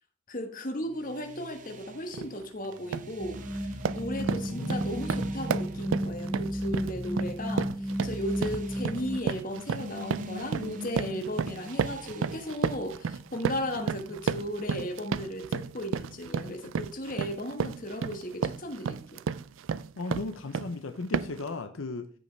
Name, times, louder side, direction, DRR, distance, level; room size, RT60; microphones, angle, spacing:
voice 1, 0.3-19.2, left 1 dB, 40° left, 5 dB, 1.3 m, -36 dB
sound 1, 0.8-14.5, right 2 dB, 40° right, 0.7 m, -45 dB
sound 2, 2.1-2.3 2.7-3.1 3.5-20.8 21.1-21.5, right 6 dB, 70° right, 0.4 m, -33 dB
sound 3, 3.2-9.2, equal, ahead, 0.7 m, -33 dB
voice 2, 4.2-5.0 20.0-22.1, left 3 dB, 80° left, 8 dB, 0.7 m, -36 dB
14.5 x 5.2 x 3.3 m, 0.42 s
head